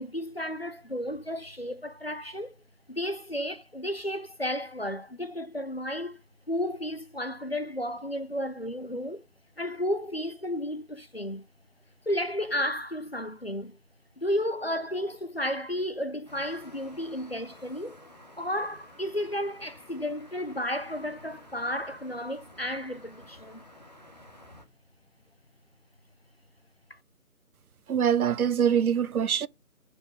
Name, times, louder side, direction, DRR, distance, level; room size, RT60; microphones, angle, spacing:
voice 1, 0.0-2.5 2.9-6.2 6.5-9.2 9.6-11.5 12.1-13.8 14.2-18.0 18.4-23.6 26.9-27.0, left 1 dB, 45° left, 0.5 m, -33 dB
sound 1, 16.3-24.6, left 1 dB, 30° left, 0.9 m, -52 dB
voice 2, 27.9-29.5, right 8 dB, 70° right, 0.5 m, -24 dB
6.3 x 4.8 x 4.9 m
figure-of-eight pair, 160°, 45 cm